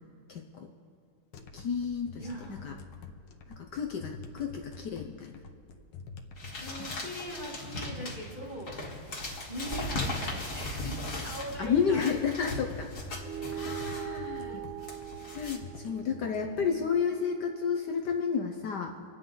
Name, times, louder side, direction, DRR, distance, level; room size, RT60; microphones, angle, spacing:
voice 1, 0.3-0.7 1.5-2.7 3.5-5.3 11.6-12.9 13.5-14.6 15.3-18.9, left 6 dB, 65° left, 3 dB, 1.3 m, -31 dB
sound 1, 1.3-16.8, left 4 dB, 90° left, 1.8 m, -47 dB
voice 2, 2.2-2.7 6.6-8.8 9.5-12.1 13.6-13.8 14.5-14.6 16.2-17.1, right 1 dB, 25° right, -3 dB, 2.1 m, -42 dB
sound 2, 6.4-15.6, left 2 dB, 40° left, 2.1 m, -38 dB
sound 3, 13.2-18.0, right 9 dB, 75° right, 0.8 m, -41 dB
27.5 x 9.5 x 3.9 m, 2.4 s
omnidirectional pair, 2.2 m